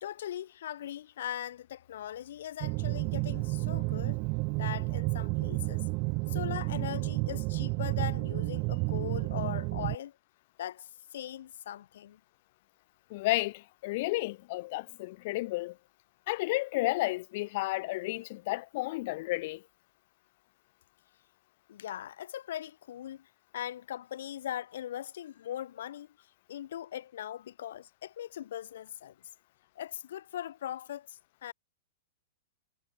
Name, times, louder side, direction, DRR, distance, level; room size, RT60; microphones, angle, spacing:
voice 1, 0.0-4.2 4.6-5.8 6.3-10.1 10.6-12.2 21.7-26.1 26.5-29.1 29.7-31.5, left 11 dB, 70° left, 1.5 m, -40 dB
sound 1, 2.6-10.0, right 31 dB, 45° right, 1.3 m, -31 dB
voice 2, 13.1-15.8 16.3-19.6, left 21 dB, 55° left, 0.9 m, -32 dB
hypercardioid pair, 120°, 0 cm